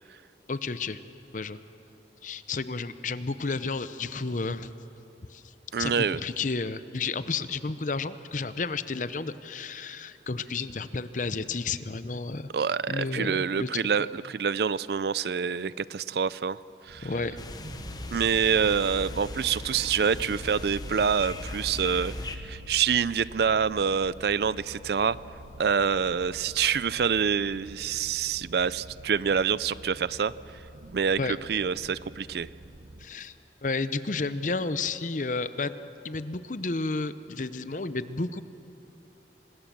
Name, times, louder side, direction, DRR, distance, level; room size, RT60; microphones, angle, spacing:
voice 1, 0.5-1.0 1.3-1.6 2.2-4.7 5.3-5.4 5.8-12.5 12.9-13.8 17.0-17.4 31.2-31.4 33.0-33.3 33.6-35.7 36.0-38.4, left 3 dB, 45° left, 13 dB, 0.7 m, -31 dB
voice 2, 5.7-6.2 12.5-16.6 16.9-17.1 18.1-25.2 25.6-30.3 30.9-32.5, right 6 dB, 65° right, 19 dB, 0.4 m, -26 dB
sound 1, 16.9-33.1, right 1 dB, 90° right, 1.2 m, -46 dB
sound 2, 17.4-22.4, left 1 dB, 20° left, 1.0 m, -39 dB
26.0 x 20.0 x 7.5 m, 2.9 s
head